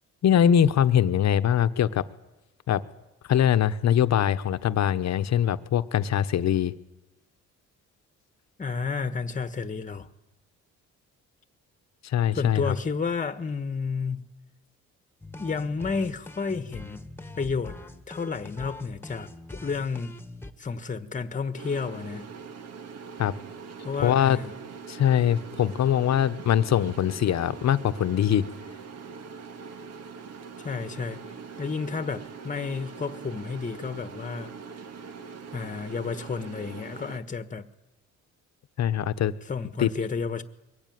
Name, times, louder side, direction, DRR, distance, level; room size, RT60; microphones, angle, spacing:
voice 1, 0.2-2.0 2.7-2.8 3.3-6.7 12.0-12.7 23.2-23.3 24.0-24.4 24.9-28.5 38.8-39.3 39.8-39.9, left 9 dB, 60° left, 1.2 m, -22 dB
voice 2, 8.6-10.1 12.3-14.2 15.4-17.0 17.3-17.8 18.1-20.2 20.6-22.3 23.8-24.5 30.6-31.2 31.6-34.5 35.5-37.6 39.4-40.4, left 5 dB, 25° left, 1.4 m, -31 dB
sound 1, 15.2-20.5, left 2 dB, 5° left, 1.7 m, -43 dB
sound 2, 21.6-37.2, right 5 dB, 55° right, 1.9 m, -42 dB
23.0 x 17.5 x 9.5 m
cardioid pair, 90°, 30 cm